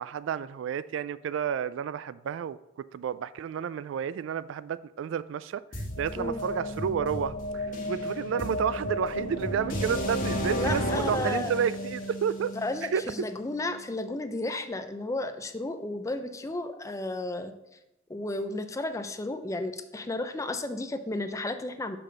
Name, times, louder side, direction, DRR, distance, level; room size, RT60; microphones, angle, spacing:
voice 1, 0.0-2.6 2.9-12.5 12.8-13.1, right 7 dB, 75° right, 0.3 m, -31 dB
sound 1, 5.7-13.6, equal, 45° left, 1.5 m, -33 dB
voice 2, 10.5-11.6 12.5-17.5 18.1-22.0, left 2 dB, 15° left, 0.4 m, -33 dB
5.9 x 5.0 x 6.5 m
head